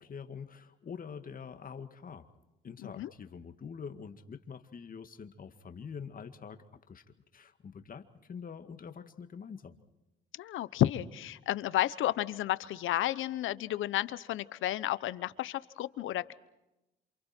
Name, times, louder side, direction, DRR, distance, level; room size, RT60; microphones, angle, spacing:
voice 1, 0.0-2.3 2.6-7.0 7.3-9.8, left 6 dB, 45° left, 8 dB, 2.1 m, -45 dB
voice 2, 10.4-16.3, left 13 dB, 80° left, 16 dB, 1.0 m, -32 dB
28.5 x 28.0 x 4.5 m, 0.95 s
cardioid pair, 90°, 20 cm